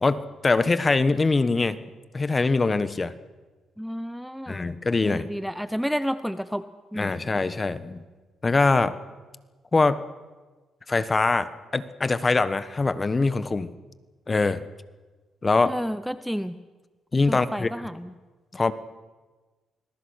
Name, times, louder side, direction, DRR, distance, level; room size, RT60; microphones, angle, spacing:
voice 1, 0.0-1.8 2.1-3.1 4.5-5.3 6.9-8.0 8.4-9.0 9.7-10.0 10.9-13.7 14.3-14.6 15.4-15.7 17.1-17.7 18.5-18.7, left 3 dB, 25° left, 14 dB, 1.2 m, -23 dB
voice 2, 3.8-4.7 5.0-6.6 6.9-7.2 15.6-16.6 17.3-18.1, equal, ahead, 13 dB, 0.8 m, -31 dB
26.0 x 20.5 x 6.5 m, 1.3 s
cardioid pair, 90°, 0 cm